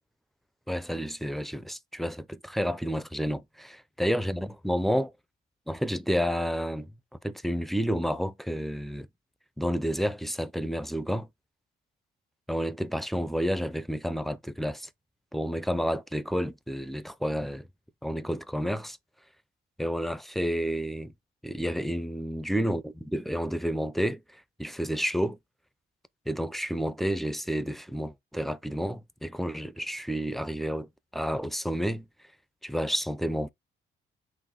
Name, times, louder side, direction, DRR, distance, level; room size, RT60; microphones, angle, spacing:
voice 1, 0.7-5.1 5.7-6.9 7.2-9.1 9.6-11.3 12.5-14.9 15.3-17.7 18.0-19.0 19.8-21.1 21.4-24.2 24.6-25.4 26.3-32.0 32.6-33.5, equal, ahead, 0.4 m, -30 dB
4.0 x 2.5 x 3.7 m
cardioid pair, 90°, 20 cm